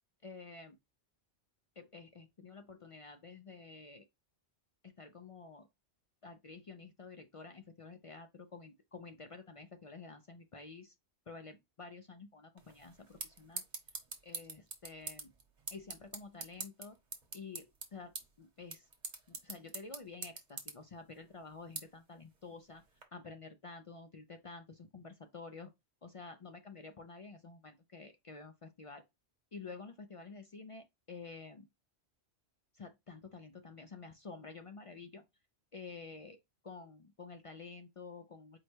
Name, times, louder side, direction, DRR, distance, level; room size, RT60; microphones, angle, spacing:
voice 1, 0.2-0.8 1.8-4.0 4.8-5.7 6.2-10.9 11.3-13.6 14.2-15.3 15.7-17.0 17.3-18.9 19.3-22.8 23.1-25.7 26.0-29.0 29.5-31.7 32.7-35.3 35.7-38.6, left 4 dB, 50° left, 0.4 m, -50 dB
sound 1, 12.6-23.0, right 4 dB, 45° right, 1.0 m, -47 dB
4.7 x 2.2 x 4.3 m
omnidirectional pair, 1.1 m